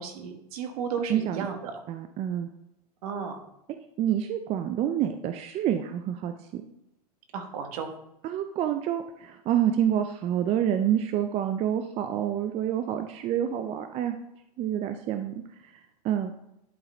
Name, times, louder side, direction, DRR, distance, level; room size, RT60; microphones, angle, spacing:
voice 1, 0.0-1.8 3.0-3.4 7.3-7.9, right 6 dB, 65° right, 5 dB, 1.4 m, -34 dB
voice 2, 1.1-1.5 1.9-2.5 4.0-6.6 8.2-14.2 14.6-15.3 16.0-16.3, right 10 dB, 30° right, 8 dB, 0.5 m, -27 dB
11.0 x 3.9 x 4.3 m, 0.82 s
hypercardioid pair, 120°, 20 cm